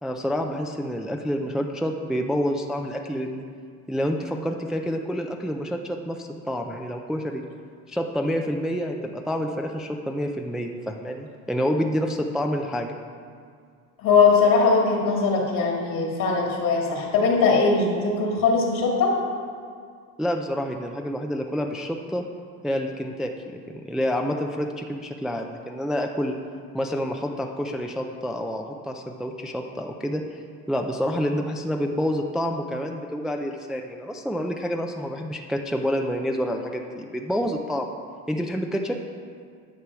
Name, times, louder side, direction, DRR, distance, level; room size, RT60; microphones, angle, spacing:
voice 1, 0.0-3.4 3.9-7.4 7.9-13.0 20.2-22.2 22.6-23.3 23.7-26.4 26.7-30.4 30.7-37.9 38.3-39.0, equal, ahead, 3 dB, 0.4 m, -28 dB
voice 2, 14.0-19.2, left 4 dB, 65° left, -1 dB, 2.1 m, -20 dB
10.0 x 6.6 x 4.7 m, 2.2 s
cardioid pair, 135°, 35 cm